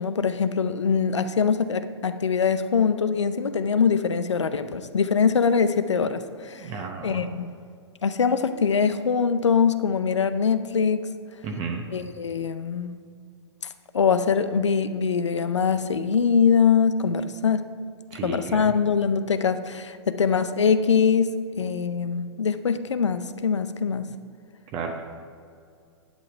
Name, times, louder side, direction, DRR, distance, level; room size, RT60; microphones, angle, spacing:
voice 1, 0.0-6.7 7.0-7.5 8.0-11.1 11.9-12.9 13.9-17.7 18.2-24.1, left 6 dB, 90° left, 11 dB, 0.6 m, -23 dB
voice 2, 6.6-7.2 11.4-11.8 18.1-18.7 24.7-25.0, right 5 dB, 35° right, 3 dB, 0.8 m, -32 dB
10.5 x 5.8 x 5.0 m, 2.2 s
hypercardioid pair, 115°, 15 cm